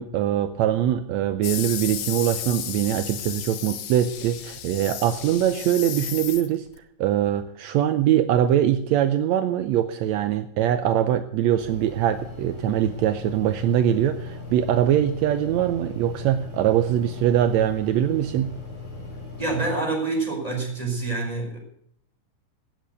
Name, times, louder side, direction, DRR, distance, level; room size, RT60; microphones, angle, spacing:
voice 1, 0.0-6.7 7.0-18.5, right 11 dB, 80° right, 10 dB, 1.6 m, -22 dB
sound 1, 1.4-6.8, left 11 dB, 90° left, 2.9 m, -33 dB
sound 2, 11.6-19.6, left 2 dB, 10° left, 5.9 m, -38 dB
voice 2, 19.4-21.6, right 3 dB, 10° right, 0 dB, 5.0 m, -26 dB
17.5 x 7.7 x 8.0 m, 0.67 s
omnidirectional pair, 3.9 m